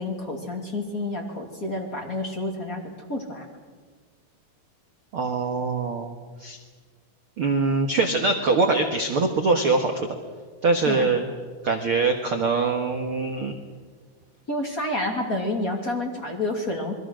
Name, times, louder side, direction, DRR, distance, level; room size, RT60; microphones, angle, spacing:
voice 1, 0.0-2.8 3.1-3.5 10.9-11.1 14.5-16.9, left 2 dB, 25° left, 1 dB, 2.6 m, -29 dB
voice 2, 5.1-6.1 6.4-6.6 7.4-10.1 10.6-11.2 11.6-13.6, right 3 dB, 55° right, 4 dB, 1.6 m, -23 dB
28.0 x 22.5 x 6.4 m, 1.5 s
omnidirectional pair, 4.5 m